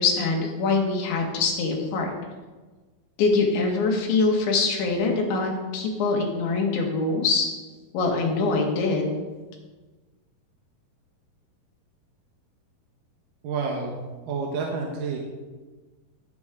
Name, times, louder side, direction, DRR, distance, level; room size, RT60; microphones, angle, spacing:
voice 1, 0.0-2.1 3.2-7.5 7.9-9.1, left 3 dB, 90° left, 0 dB, 4.2 m, -23 dB
voice 2, 13.4-14.0 14.3-15.2, right 4 dB, 65° right, -1 dB, 2.4 m, -29 dB
17.5 x 8.0 x 3.8 m, 1.3 s
omnidirectional pair, 5.1 m